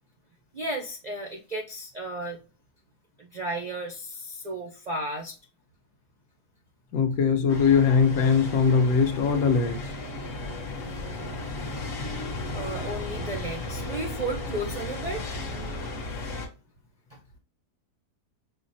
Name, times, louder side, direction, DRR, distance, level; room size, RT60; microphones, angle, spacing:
voice 1, 0.5-2.4 3.2-5.4 12.5-15.2 17.1-17.2, right 1 dB, 70° right, 0.4 m, -34 dB
voice 2, 6.9-9.9, left 6 dB, 75° left, 1.2 m, -21 dB
sound 1, 7.5-16.5, left 2 dB, 45° left, 0.8 m, -35 dB
5.7 x 2.1 x 2.6 m
omnidirectional pair, 1.7 m